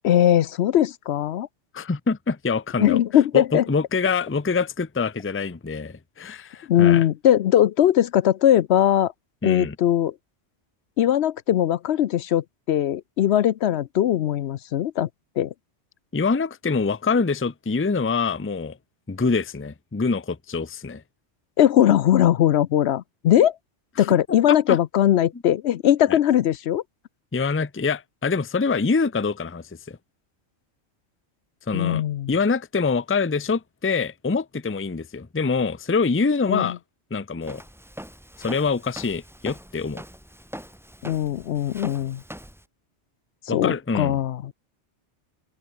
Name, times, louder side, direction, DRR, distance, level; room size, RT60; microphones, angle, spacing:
voice 1, 0.0-1.5 2.8-3.6 6.7-9.1 9.4-10.1 11.0-15.1 15.4-15.5 21.6-23.6 24.0-26.8 31.7-32.3 36.5-36.8 41.0-42.2 43.5-44.5, left 11 dB, 70° left, 0.8 m, -20 dB
voice 2, 1.7-3.0 3.3-7.0 9.4-9.8 16.1-18.8 19.1-21.0 24.0-24.1 24.5-24.8 26.1-26.2 27.3-30.0 31.7-36.8 37.1-37.6 38.4-40.0 43.5-44.2, left 4 dB, 15° left, 0.5 m, -25 dB
Walk footsteps, 37.4-42.6, equal, ahead, 1.0 m, -42 dB
open air
omnidirectional pair, 1.2 m